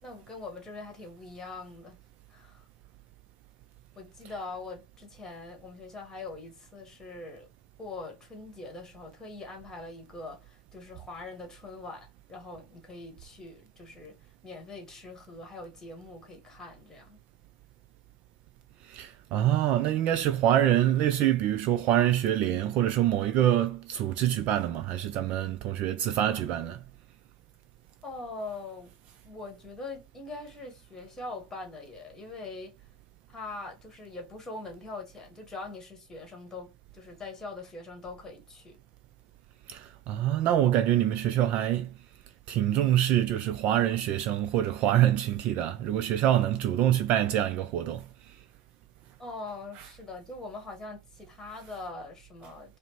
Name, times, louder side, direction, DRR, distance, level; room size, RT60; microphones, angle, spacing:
voice 1, 0.0-2.0 2.3-2.6 3.9-7.5 7.8-14.2 14.4-17.2 28.0-28.9 29.2-32.7 33.3-38.8 49.2-52.8, left 3 dB, 15° left, 1.4 m, -42 dB
voice 2, 18.8-26.8 39.7-41.9 42.5-48.1, right 12 dB, 40° right, 0.3 m, -25 dB
4.9 x 2.0 x 3.0 m
hypercardioid pair, 105°, 4 cm